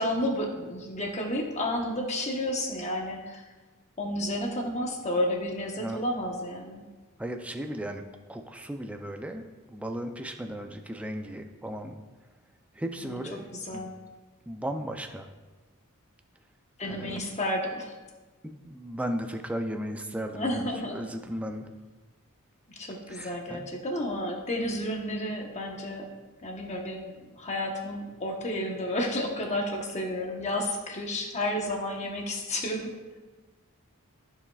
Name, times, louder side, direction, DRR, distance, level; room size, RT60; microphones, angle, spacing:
voice 1, 0.0-3.4 4.0-6.8 13.0-13.2 13.5-13.9 16.8-17.9 20.3-21.0 22.8-26.1 26.4-32.9, left 1 dB, 30° left, 1 dB, 1.0 m, -31 dB
voice 2, 7.2-8.0 8.3-12.0 12.7-13.9 14.5-15.3 16.8-17.2 18.4-21.7 23.1-23.7, equal, 5° right, 5 dB, 0.4 m, -36 dB
14.5 x 4.9 x 2.4 m, 1.3 s
head